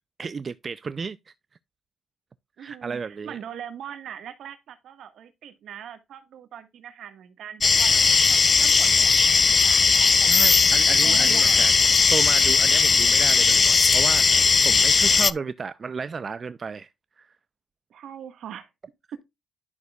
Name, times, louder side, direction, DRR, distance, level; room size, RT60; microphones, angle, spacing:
voice 1, 0.2-1.3 2.6-3.4 10.2-11.7 12.1-16.9 17.2-17.4, right 5 dB, 40° right, 0.4 m, -33 dB
voice 2, 2.6-10.3 11.0-11.8 17.9-18.7 19.1-19.2, right 9 dB, 70° right, 1.5 m, -41 dB
sound 1, 7.6-15.3, left 4 dB, 35° left, 0.4 m, -18 dB
11.0 x 6.3 x 2.3 m
cardioid pair, 90°, 0 cm